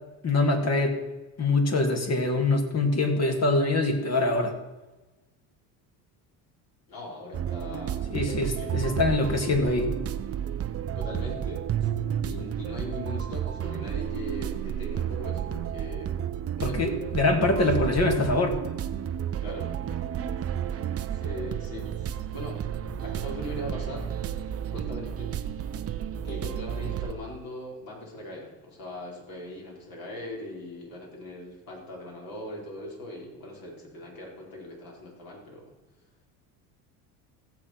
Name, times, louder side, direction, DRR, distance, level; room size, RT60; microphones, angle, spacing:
voice 1, 0.2-1.0 1.4-4.5 8.1-9.9 16.6-18.6, left 2 dB, 35° left, 4 dB, 2.4 m, -24 dB
voice 2, 6.9-9.0 10.9-11.9 12.2-16.3 16.6-17.2 17.6-17.8 19.4-20.0 21.1-22.7 23.0-24.2 24.7-25.4 26.2-35.7, left 1 dB, 50° left, -1 dB, 5.0 m, -40 dB
sound 1, 7.3-27.1, right 9 dB, 35° right, 0.7 m, -31 dB
15.5 x 7.3 x 6.1 m, 1.1 s
supercardioid pair, 95°, 43 cm